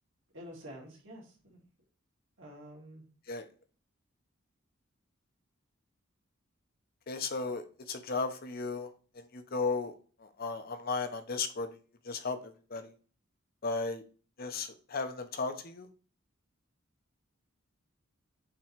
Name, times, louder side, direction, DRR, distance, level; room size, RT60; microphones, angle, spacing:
voice 1, 0.3-1.6 2.4-3.0, equal, 65° right, -2 dB, 2.4 m, -48 dB
voice 2, 7.1-8.9 9.2-9.9 10.2-11.7 12.0-12.9 13.6-14.0 14.4-15.9, left 4 dB, 45° left, 8 dB, 0.7 m, -35 dB
7.3 x 3.0 x 4.5 m, 0.38 s
head